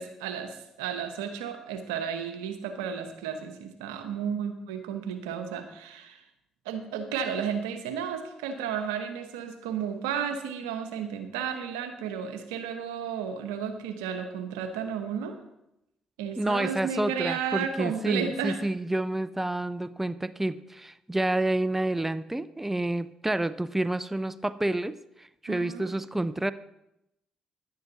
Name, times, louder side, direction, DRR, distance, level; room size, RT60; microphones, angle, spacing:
voice 1, 0.0-6.2 6.6-15.4 16.2-18.6 25.5-25.9, right 7 dB, 90° right, 8 dB, 1.0 m, -33 dB
voice 2, 16.4-26.5, right 1 dB, 10° right, 15 dB, 0.5 m, -29 dB
10.5 x 9.4 x 4.0 m, 0.85 s
hypercardioid pair, 50°, 2 cm